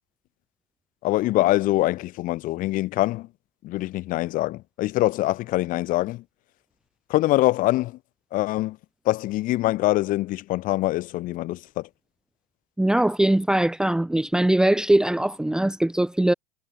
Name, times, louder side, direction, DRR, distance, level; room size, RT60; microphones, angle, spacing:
voice 1, 1.0-3.3 3.6-6.2 7.1-8.0 8.3-8.8 9.1-11.9, left 17 dB, 45° left, 3.7 m, -24 dB
voice 2, 12.8-16.3, right 1 dB, 5° right, 1.2 m, -21 dB
hypercardioid pair, 115°, 20 cm